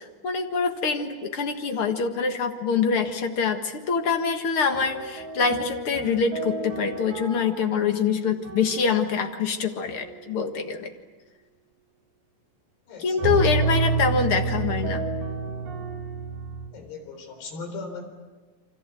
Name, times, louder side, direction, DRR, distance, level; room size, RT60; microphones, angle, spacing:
voice 1, 0.0-10.9 13.0-15.0, left 5 dB, 55° left, 5 dB, 1.6 m, -25 dB
sound 1, 4.7-9.2 9.8-10.2 13.2-16.7, right 3 dB, 85° right, 5.1 m, -30 dB
voice 2, 12.9-13.4 16.7-18.0, left 4 dB, 75° left, 5 dB, 6.0 m, -38 dB
29.0 x 25.5 x 7.7 m, 1.2 s
omnidirectional pair, 4.8 m